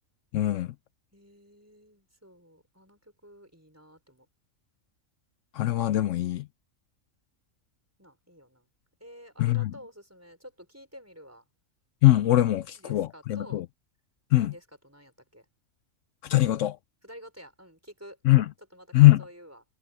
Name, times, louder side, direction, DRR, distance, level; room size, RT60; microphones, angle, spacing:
voice 1, 0.3-0.7 5.5-6.4 9.4-9.7 12.0-13.6 14.3-14.5 16.2-16.8 18.3-18.5 18.9-19.2, left 16 dB, 75° left, 0.9 m, -21 dB
voice 2, 1.1-4.3 8.0-8.7 9.0-11.4 12.6-13.6 14.4-15.5 17.0-18.2 18.7-19.6, equal, 10° right, 5.2 m, -50 dB
omnidirectional pair, 1.3 m